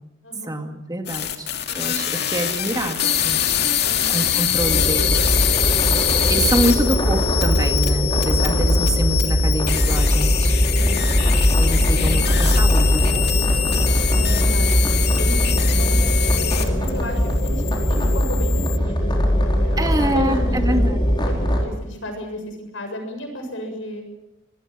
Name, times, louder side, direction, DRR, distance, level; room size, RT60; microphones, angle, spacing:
voice 1, 0.4-1.5 1.8-3.4 4.1-5.2 6.3-10.5 11.6-13.8 19.8-21.0, right 1 dB, 20° right, 5 dB, 2.1 m, -26 dB
sound 1, 1.1-16.9 17.2-18.8, left 10 dB, 55° left, 2.4 m, -24 dB
voice 2, 3.8-4.2 10.8-11.0 14.2-24.0, equal, 75° left, 4 dB, 7.2 m, -34 dB
sound 2, 4.6-21.6, equal, 25° left, 4.4 m, -20 dB
25.5 x 20.5 x 6.3 m, 0.93 s
head